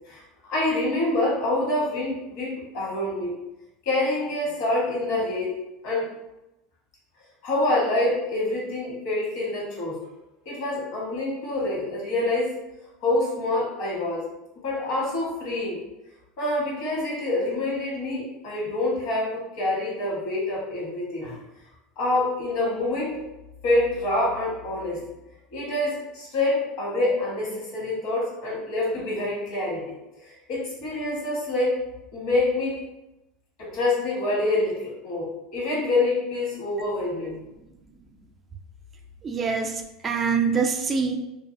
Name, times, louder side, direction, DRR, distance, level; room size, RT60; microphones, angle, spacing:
voice 1, 0.5-3.3 3.8-5.5 5.8-6.1 7.4-10.0 10.4-12.6 13.0-14.3 14.6-15.8 16.4-21.4 22.0-23.2 23.6-25.1 25.5-29.8 30.1-31.8 32.1-32.8 33.6-37.3, left 2 dB, 65° left, -4 dB, 1.2 m, -26 dB
voice 2, 39.2-41.1, right 5 dB, 30° right, 4 dB, 0.4 m, -25 dB
2.5 x 2.3 x 2.5 m, 0.95 s
hypercardioid pair, 85°, 0 cm